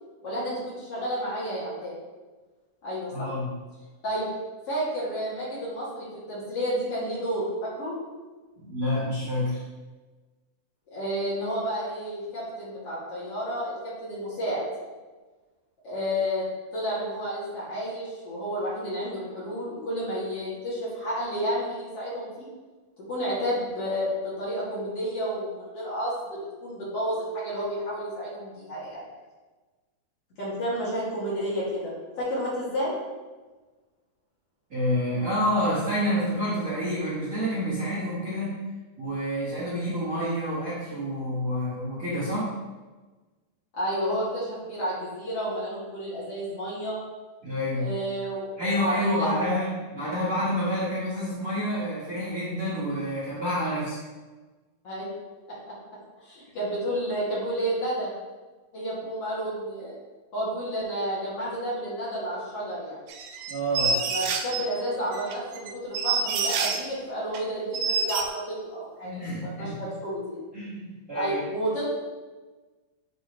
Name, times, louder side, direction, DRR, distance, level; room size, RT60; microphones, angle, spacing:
voice 1, 0.2-1.9 2.8-3.3 4.0-4.3 4.7-8.0 10.9-14.6 15.8-16.4 16.7-22.5 23.1-29.0 30.4-32.9 43.7-47.0 47.7-49.6 54.8-55.1 56.2-58.1 58.7-60.0 60.3-63.0 63.8-70.5 71.1-71.8, equal, 45° left, -9 dB, 2.8 m, -31 dB
voice 2, 3.1-3.5 8.6-9.6 34.7-38.5 39.0-42.5 47.4-47.9 48.6-54.0 63.5-63.9 69.0-69.8 70.5-71.4, equal, 50° right, -11 dB, 1.0 m, -28 dB
sound 1, 63.1-64.7 65.1-66.9 67.3-67.4 67.7-68.2, right 4 dB, 85° right, 2.4 m, -27 dB
10.0 x 3.5 x 3.1 m, 1.3 s
omnidirectional pair, 4.3 m